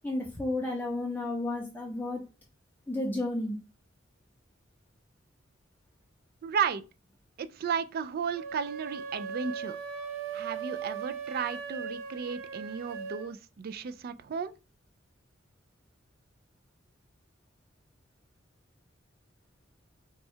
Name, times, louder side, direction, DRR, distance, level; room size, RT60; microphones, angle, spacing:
voice 1, 0.0-2.2 2.9-3.6, left 2 dB, 10° left, 0.6 m, -32 dB
voice 2, 6.4-6.8 7.4-9.8 10.3-14.5, right 6 dB, 45° right, 0.3 m, -34 dB
sound 1, 8.3-13.3, right 6 dB, 85° right, 0.7 m, -38 dB
4.4 x 2.3 x 4.3 m
head